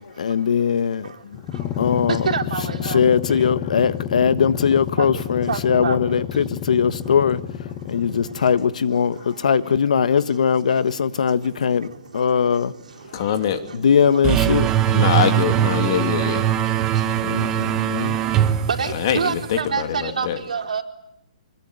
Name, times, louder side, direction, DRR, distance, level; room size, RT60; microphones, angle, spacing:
voice 1, 0.2-1.1 1.8-2.3 2.9-7.4 7.9-11.9 12.1-12.7 13.7-14.7 17.2-18.2, left 7 dB, 70° left, 1.5 m, -20 dB
sound 1, 1.3-8.7, left 10 dB, 20° left, 1.0 m, -30 dB
voice 2, 2.1-3.0 5.0-5.1 5.5-6.2 13.7-13.8 17.6-17.9 18.8-20.8, right 6 dB, 85° right, 4.6 m, -27 dB
voice 3, 13.1-13.6 14.9-16.5 18.9-20.4, left 8 dB, 35° left, 2.8 m, -23 dB
sound 2, 14.2-19.6, right 11 dB, 15° right, 1.0 m, -21 dB
25.0 x 22.5 x 9.7 m
hypercardioid pair, 170°, 4 cm